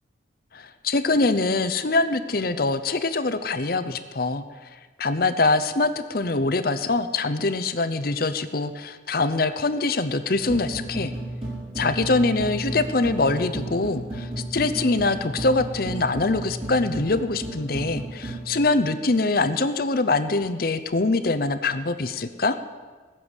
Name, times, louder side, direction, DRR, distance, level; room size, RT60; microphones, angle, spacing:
voice 1, 0.5-4.4 5.0-11.1 11.8-22.6, left 3 dB, 50° left, 10 dB, 0.8 m, -24 dB
sound 1, 10.3-18.5, right 1 dB, 30° right, 4.4 m, -33 dB
18.5 x 7.1 x 8.1 m, 1.5 s
head